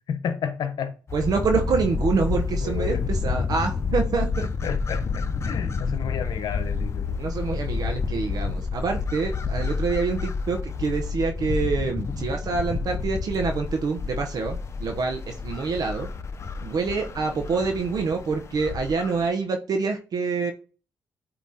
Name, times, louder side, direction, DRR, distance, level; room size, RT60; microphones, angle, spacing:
voice 1, 0.1-0.9 2.6-3.0 4.6-7.2, left 7 dB, 70° left, 0.9 m, -31 dB
sound 1, 1.1-19.3, left 5 dB, 40° left, 0.6 m, -29 dB
voice 2, 1.1-4.5 7.2-16.1 16.6-20.5, right 4 dB, 60° right, 0.9 m, -26 dB
8.4 x 3.0 x 4.1 m
cardioid pair, 90°, 7 cm